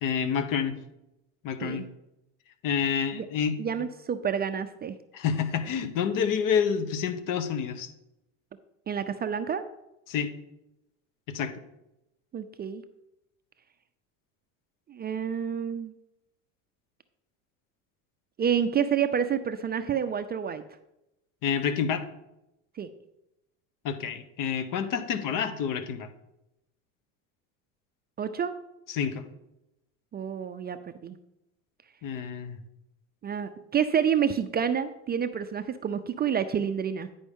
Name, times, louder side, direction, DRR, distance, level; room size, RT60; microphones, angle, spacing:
voice 1, 0.0-0.8 1.4-1.8 2.6-3.6 5.1-7.9 10.1-10.3 11.3-11.5 21.4-22.0 23.8-26.1 28.9-29.2 32.0-32.6, left 7 dB, 55° left, 11 dB, 1.0 m, -28 dB
voice 2, 3.6-5.0 8.9-9.6 12.3-12.8 14.9-15.9 18.4-20.6 22.8-22.9 28.2-28.5 30.1-30.8 31.0-31.2 33.2-37.1, right 8 dB, 25° right, 10 dB, 0.4 m, -28 dB
9.6 x 5.3 x 3.6 m, 0.89 s
supercardioid pair, 90°, 38 cm